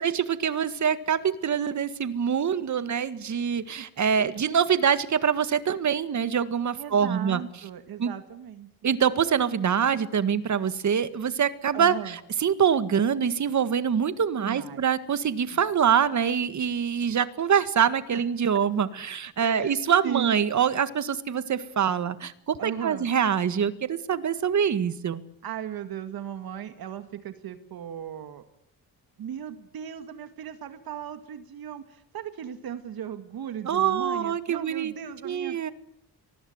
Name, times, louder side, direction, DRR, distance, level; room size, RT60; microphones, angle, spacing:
voice 1, 0.0-7.4 8.0-8.1 8.8-25.2 33.7-34.9 35.2-35.7, right 7 dB, 50° right, 13 dB, 1.8 m, -25 dB
voice 2, 6.8-8.9 11.7-12.2 14.4-14.8 15.5-15.6 18.1-18.2 19.4-19.7 20.0-20.4 22.6-23.1 25.4-28.4 29.2-35.7, right 9 dB, 70° right, 9 dB, 2.0 m, -37 dB
23.5 x 20.0 x 7.9 m, 0.79 s
cardioid pair, 115°, 37 cm